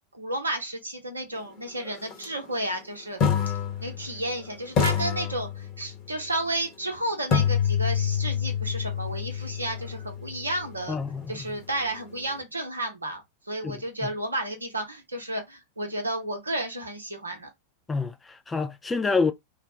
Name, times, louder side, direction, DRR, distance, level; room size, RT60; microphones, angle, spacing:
voice 1, 0.1-3.5 3.8-11.0 11.3-13.2 13.5-17.5, right 1 dB, 80° right, 0.7 m, -32 dB
sound 1, 2.1-2.2 3.2-4.4 4.8-6.0 7.3-11.2, left 7 dB, 40° left, 1.0 m, -27 dB
voice 2, 10.9-11.6 13.6-14.1 17.9-19.3, left 4 dB, 15° left, 0.3 m, -28 dB
2.4 x 2.1 x 2.8 m
figure-of-eight pair, 90°, 0 cm